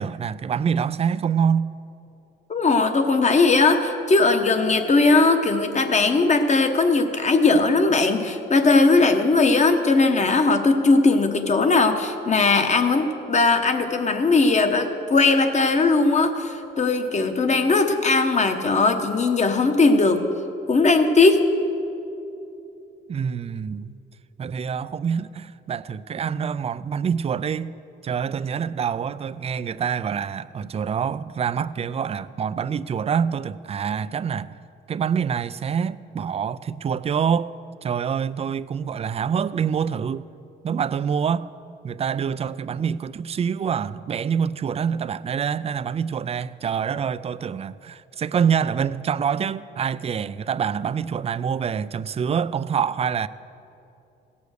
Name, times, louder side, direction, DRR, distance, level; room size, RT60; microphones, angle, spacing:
voice 1, 0.0-1.7 23.1-23.9 24.4-27.8 28.0-34.6 34.9-37.5 37.8-40.3 40.6-41.5 41.8-53.3, right 7 dB, 30° right, 0.4 m, -26 dB
voice 2, 2.5-20.2 20.7-21.5, left 3 dB, 35° left, 1.1 m, -19 dB
16.5 x 7.0 x 6.5 m
cardioid pair, 90°, 20 cm